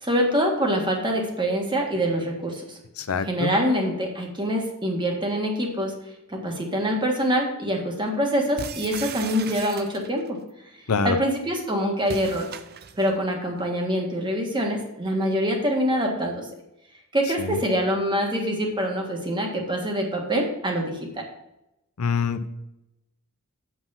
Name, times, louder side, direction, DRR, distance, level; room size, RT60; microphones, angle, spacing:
voice 1, 0.0-2.8 3.2-5.9 6.3-10.4 11.0-12.5 12.9-16.5 17.1-21.3, equal, 20° right, 1 dB, 1.6 m, -25 dB
voice 2, 3.0-3.5 10.9-11.2 17.5-17.6 22.0-22.5, left 5 dB, 85° left, 10 dB, 0.6 m, -25 dB
sound 1, 8.6-10.3 12.0-13.2, right 7 dB, 45° right, 0.5 m, -37 dB
8.0 x 5.6 x 5.7 m, 0.89 s
head